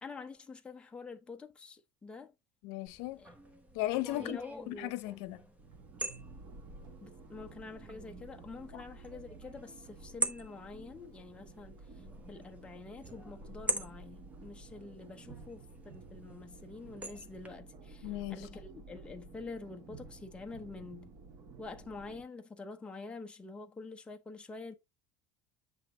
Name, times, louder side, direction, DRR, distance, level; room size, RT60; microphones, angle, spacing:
voice 1, 0.0-2.3 3.2-3.3 4.1-4.7 7.0-21.2 21.6-24.7, left 4 dB, 10° left, 0.7 m, -47 dB
voice 2, 2.6-3.2 3.7-4.4 4.7-5.4 8.7-8.8 18.0-18.4, left 16 dB, 80° left, 0.7 m, -36 dB
sound 1, 2.9-17.5, right 3 dB, 15° right, 1.0 m, -44 dB
sound 2, 5.6-22.2, right 3 dB, 40° right, 1.6 m, -52 dB
8.0 x 3.4 x 3.9 m
cardioid pair, 165°, 10 cm